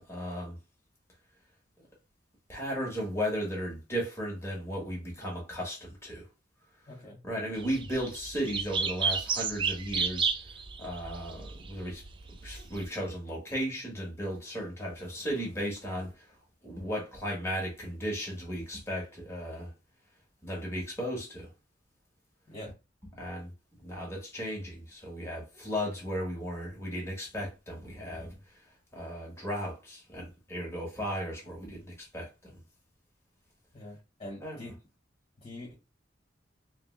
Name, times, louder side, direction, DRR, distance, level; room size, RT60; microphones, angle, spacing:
voice 1, 0.1-0.6 1.8-1.9 2.5-6.2 7.2-10.3 10.8-12.0 12.4-16.3 16.6-19.7 20.4-21.5 23.2-23.5 23.8-28.3 28.9-32.6 34.4-34.6, equal, 15° left, 1.3 m, -35 dB
voice 2, 6.9-7.2 22.5-22.7 33.7-34.7 35.4-35.7, left 1 dB, 30° left, 1.5 m, -44 dB
sound 1, 7.6-12.8, right 5 dB, 25° right, 0.4 m, -32 dB
3.1 x 2.3 x 3.1 m
head